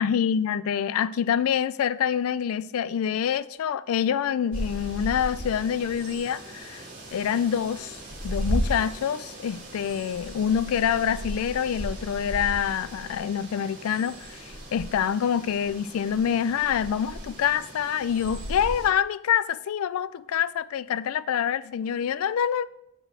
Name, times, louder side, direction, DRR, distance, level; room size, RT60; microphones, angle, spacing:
voice 1, 0.0-8.0 8.2-22.6, left 8 dB, 70° left, 0.3 m, -26 dB
sound 1, 4.5-18.9, equal, 35° right, 2.2 m, -36 dB
8.0 x 4.5 x 4.9 m
head